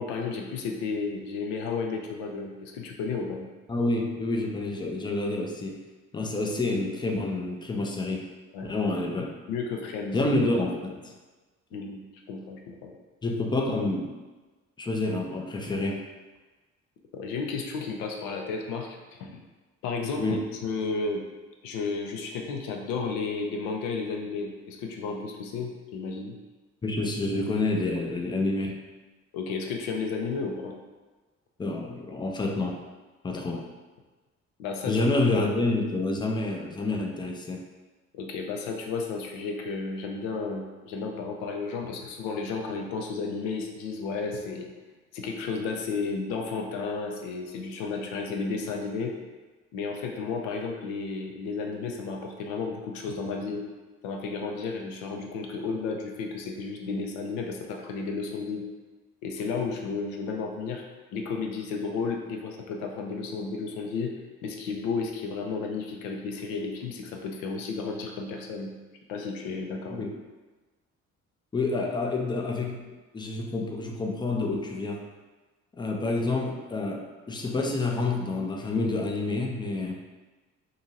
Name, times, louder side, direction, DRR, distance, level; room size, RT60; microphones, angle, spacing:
voice 1, 0.0-3.5 8.5-8.7 9.5-10.2 11.7-12.0 12.3-12.9 17.1-19.4 19.8-20.4 20.6-21.2 21.6-26.4 29.3-30.8 33.3-33.4 34.6-35.0 38.1-44.7 45.1-49.1 49.7-53.6 54.0-58.6 59.2-60.8 61.1-64.1 64.4-68.7 69.1-70.0, left 4 dB, 65° left, 2 dB, 0.5 m, -33 dB
voice 2, 3.7-5.8 6.1-8.2 8.6-9.3 10.1-11.1 11.7-11.8 13.2-14.1 14.8-16.0 20.2-20.4 26.8-28.7 31.6-32.8 33.2-33.6 34.9-37.6 69.9-70.1 71.5-72.8 73.1-75.0 75.8-80.0, left 2 dB, 10° left, 1 dB, 0.4 m, -28 dB
2.7 x 2.5 x 2.7 m, 1.2 s
figure-of-eight pair, 45°, 38 cm